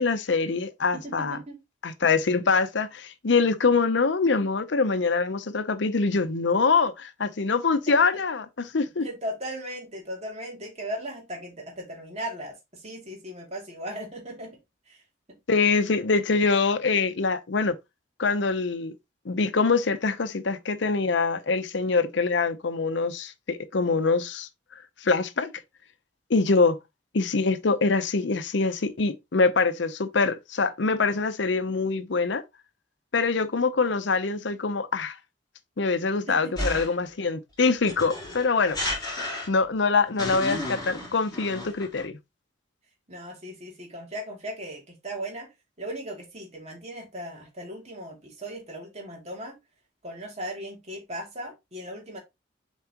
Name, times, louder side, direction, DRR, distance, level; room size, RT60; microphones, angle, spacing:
voice 1, 0.0-1.4 1.8-9.1 15.5-17.8 18.2-18.9 19.2-24.5 25.0-25.5 26.3-26.8 27.1-32.4 33.1-35.2 35.8-38.8 39.5-42.2, left 4 dB, 65° left, 0.7 m, -24 dB
voice 2, 0.9-1.6 7.9-8.0 9.0-14.6 14.9-15.0 15.3-15.4 36.3-36.8 39.2-39.3 43.1-45.5 45.8-49.6 50.0-52.2, right 1 dB, 35° right, 2.6 m, -37 dB
sound 1, 36.6-37.1 37.8-39.7 40.2-42.0, left 1 dB, 20° left, 3.6 m, -32 dB
7.3 x 4.5 x 2.9 m
head